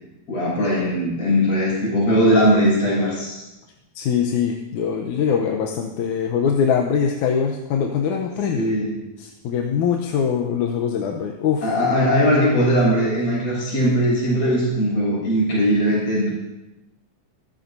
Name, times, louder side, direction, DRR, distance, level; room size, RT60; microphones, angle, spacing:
voice 1, 0.3-3.4 8.5-8.9 11.6-16.3, equal, 60° left, -6 dB, 7.2 m, -19 dB
voice 2, 4.0-8.7 9.2-11.7, left 7 dB, 85° left, 2 dB, 2.3 m, -22 dB
23.0 x 13.5 x 2.7 m, 0.99 s
omnidirectional pair, 3.4 m